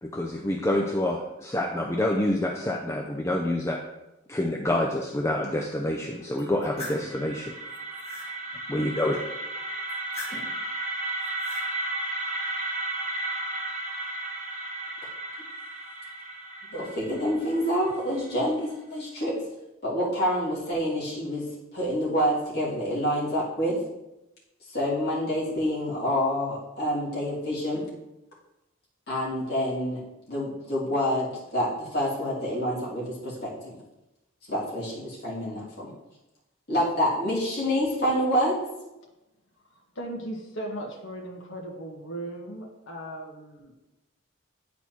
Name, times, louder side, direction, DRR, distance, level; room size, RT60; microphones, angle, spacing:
voice 1, 0.0-3.8 4.3-7.5 8.7-9.2, left 1 dB, 15° left, 1 dB, 0.4 m, -27 dB
sound 1, 6.3-18.3, right 2 dB, 35° right, 1.3 m, -34 dB
sound 2, 6.4-7.1 7.6-8.3 9.9-10.6 11.2-11.7, left 2 dB, 30° left, 2.0 m, -40 dB
voice 2, 16.7-19.4 19.8-21.5 21.7-23.8 24.6-27.9 29.1-30.0 30.3-33.8 34.5-35.9 36.7-38.6, equal, 50° left, -7 dB, 2.4 m, -27 dB
voice 3, 39.6-43.9, right 1 dB, 70° left, -1 dB, 1.4 m, -38 dB
10.0 x 4.2 x 3.0 m, 0.96 s
head